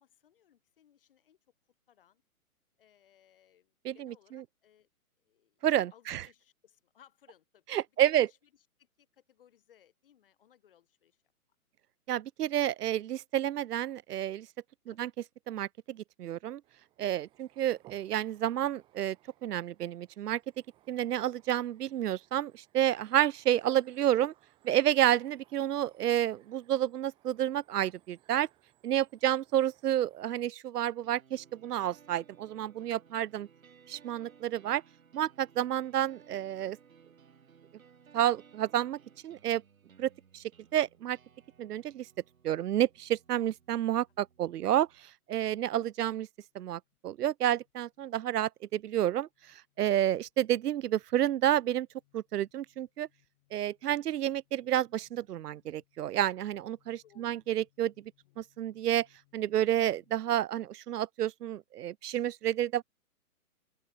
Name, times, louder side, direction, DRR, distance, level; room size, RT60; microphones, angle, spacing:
voice 1, 0.0-1.4 1.9-2.2 2.8-4.9 5.2-5.7 5.9-11.2 14.9-15.1 57.0-57.4 58.2-58.5 60.5-60.7, left 10 dB, 35° left, 3.7 m, -64 dB
voice 2, 5.6-6.2 7.7-8.3 12.1-14.5 14.9-15.1 15.5-16.6 17.0-19.2 19.4-20.4 20.9-24.3 24.6-28.5 28.8-33.5 33.9-34.8 35.1-36.8 38.1-39.6 40.0-40.4 40.7-41.2 41.6-42.1 42.4-44.9 45.3-46.3 46.5-49.3 49.8-51.9 52.1-53.1 53.5-57.9 58.4-59.1 59.3-62.8, right 12 dB, 85° right, 0.6 m, -30 dB
sound 1, 16.6-30.6, right 15 dB, 10° right, 3.7 m, -65 dB
sound 2, 31.0-45.0, right 7 dB, 60° right, 8.0 m, -60 dB
sound 3, 43.5-60.1, left 21 dB, 20° left, 4.2 m, -74 dB
open air
hypercardioid pair, 175°, 45 cm